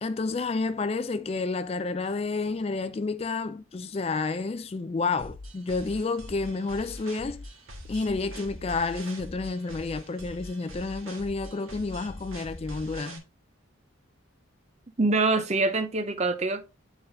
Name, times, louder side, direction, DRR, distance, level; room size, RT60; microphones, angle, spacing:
voice 1, 0.0-7.4 7.9-13.2, left 3 dB, 30° left, 0.3 m, -30 dB
sound 1, 5.2-13.2, left 1 dB, 80° right, 1.5 m, -43 dB
voice 2, 15.0-16.6, right 3 dB, 30° right, 0.6 m, -24 dB
9.6 x 4.0 x 2.7 m
head